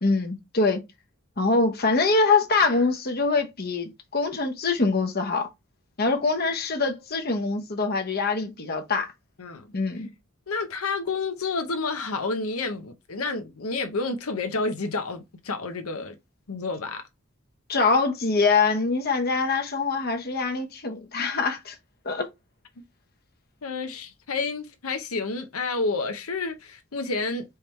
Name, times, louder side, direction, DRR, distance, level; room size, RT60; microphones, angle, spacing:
voice 1, 0.0-0.8 1.4-5.5 6.0-9.1 9.7-10.1 17.7-21.8 22.0-22.3, left 4 dB, 45° left, 1.0 m, -24 dB
voice 2, 10.5-16.2 16.5-17.0 23.6-27.4, left 3 dB, 90° left, 0.8 m, -30 dB
4.5 x 3.5 x 3.2 m
head